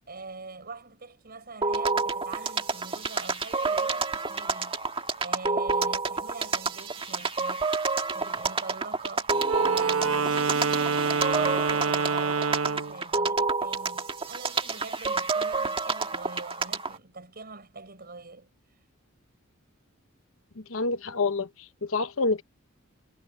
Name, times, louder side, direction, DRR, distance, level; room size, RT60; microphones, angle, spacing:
voice 1, 0.1-4.8 5.2-7.8 8.1-18.5, right 3 dB, 50° right, 5.1 m, -43 dB
sound 1, 1.6-17.0, right 4 dB, 25° right, 1.7 m, -29 dB
Wind instrument woodwind instrument, 9.4-13.0, right 5 dB, 85° right, 1.2 m, -26 dB
voice 2, 20.7-21.5 21.8-22.4, left 3 dB, 75° left, 1.1 m, -27 dB
head